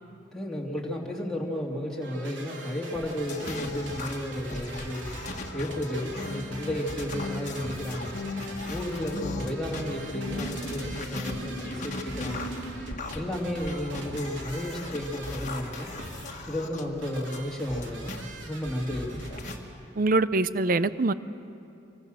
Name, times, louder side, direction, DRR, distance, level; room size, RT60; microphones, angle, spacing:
voice 1, 0.3-5.1 5.5-8.2 8.7-12.5 13.1-15.9 16.5-18.2 18.4-19.3, left 1 dB, 5° left, -4 dB, 2.8 m, -33 dB
sound 1, 1.9-19.6, right 2 dB, 80° right, 3.3 m, -43 dB
sound 2, 2.9-9.8 10.3-18.2 18.7-19.6, left 2 dB, 40° left, 1.8 m, -39 dB
sound 3, 6.1-13.0, left 2 dB, 55° left, 1.7 m, -39 dB
voice 2, 20.0-21.1, right 3 dB, 45° right, 15 dB, 0.6 m, -24 dB
26.5 x 23.0 x 6.6 m, 2.7 s
head